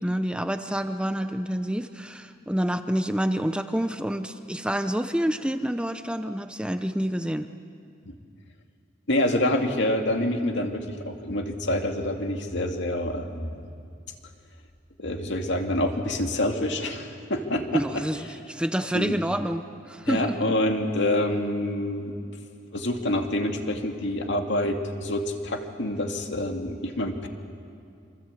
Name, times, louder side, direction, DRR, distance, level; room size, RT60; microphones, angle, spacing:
voice 1, 0.0-7.5 17.7-20.4, equal, 5° right, 8 dB, 0.7 m, -28 dB
voice 2, 9.1-13.6 15.0-18.0 18.9-19.2 20.1-22.1 22.7-27.3, left 1 dB, 65° left, 4 dB, 2.5 m, -27 dB
28.0 x 25.0 x 8.5 m, 2.4 s
head